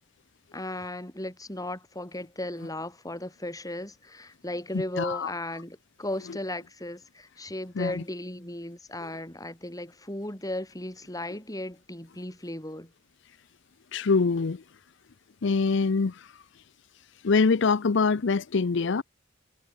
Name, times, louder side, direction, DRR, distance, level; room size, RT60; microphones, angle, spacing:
voice 1, 0.5-12.9, left 1 dB, 20° left, 6.8 m, -36 dB
voice 2, 4.7-5.3 7.8-8.0 13.9-14.6 15.4-16.4 17.2-19.0, left 4 dB, 65° left, 0.6 m, -24 dB
head